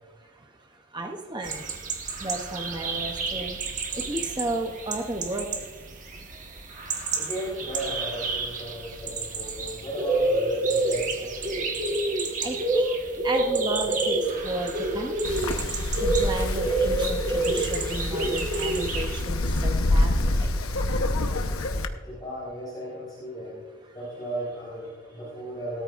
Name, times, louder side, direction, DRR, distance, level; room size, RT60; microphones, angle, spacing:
voice 1, 0.9-1.6 2.2-3.6 3.9-5.5 12.4-13.0 13.2-14.2 14.4-15.3 16.0-20.1 20.4-20.5, right 1 dB, 20° right, 3 dB, 0.7 m, -33 dB
sound 1, 1.4-19.2, right 3 dB, 35° right, 1.4 m, -29 dB
voice 2, 7.1-11.6 22.0-23.6 23.9-25.8, equal, 20° left, -7 dB, 4.5 m, -35 dB
Wind, 15.2-21.9, left 2 dB, 90° left, 1.0 m, -27 dB
17.0 x 13.5 x 2.5 m, 1.4 s
head